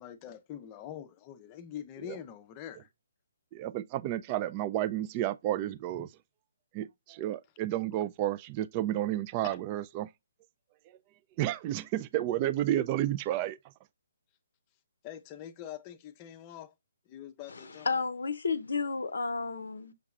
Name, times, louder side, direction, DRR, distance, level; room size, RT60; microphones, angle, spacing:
voice 1, 0.0-2.9 6.0-6.1 9.4-9.6 15.0-16.7 17.1-18.0, left 10 dB, 25° left, 0.5 m, -44 dB
voice 2, 3.5-6.1 6.7-10.1 11.4-13.6, right 13 dB, 30° right, 0.3 m, -31 dB
voice 3, 17.5-19.9, left 4 dB, 70° left, 0.6 m, -32 dB
6.4 x 2.9 x 2.3 m
figure-of-eight pair, 140°, 0 cm